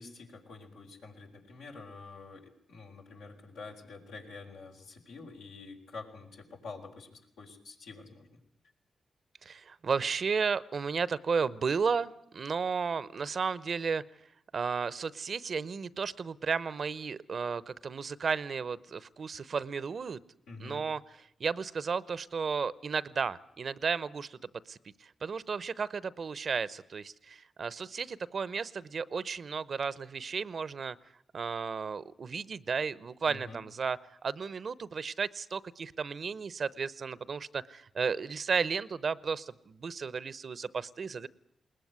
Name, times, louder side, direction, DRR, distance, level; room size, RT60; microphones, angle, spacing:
voice 1, 0.0-8.4 20.5-20.8 33.3-33.6, left 4 dB, 90° left, 0 dB, 4.0 m, -47 dB
voice 2, 9.4-14.0 14.5-20.2 20.6-21.0 21.4-24.4 24.7-31.0 31.3-41.3, right 5 dB, 60° right, 18 dB, 0.8 m, -33 dB
21.0 x 19.5 x 9.5 m, 0.72 s
supercardioid pair, 45°, 0 cm